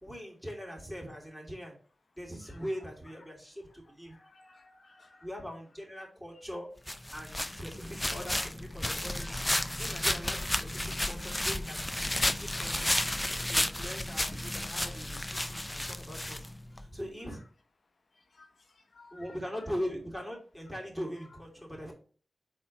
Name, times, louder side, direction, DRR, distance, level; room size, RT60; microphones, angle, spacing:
voice 1, 0.0-1.8 2.1-4.2 5.2-6.7 7.1-9.3 9.8-11.8 12.1-12.8 13.4-16.5 16.7-17.4 19.1-21.9, equal, 10° right, -2 dB, 2.8 m, -41 dB
voice 2, 4.1-5.3 9.2-9.3 12.2-12.5 18.3-18.5 18.9-19.3, left 3 dB, 65° left, 2 dB, 1.1 m, -57 dB
sound 1, 6.9-16.9, left 1 dB, 15° left, 0.5 m, -32 dB
4.4 x 4.2 x 5.2 m, 0.43 s
cardioid pair, 55°, 0 cm